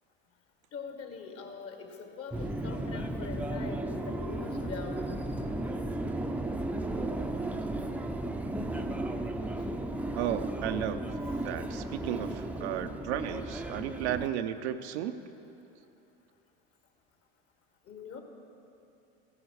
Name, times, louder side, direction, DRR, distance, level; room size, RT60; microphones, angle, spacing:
voice 1, 0.7-5.1 17.9-18.2, left 5 dB, 45° left, 4 dB, 1.8 m, -43 dB
Subway metro underground, 2.3-14.3, right 1 dB, 5° right, 0.6 m, -34 dB
voice 2, 10.1-11.0 11.4-15.1, right 10 dB, 75° right, 8 dB, 0.7 m, -34 dB
15.0 x 11.0 x 4.7 m, 2.9 s
hypercardioid pair, 80°, 34 cm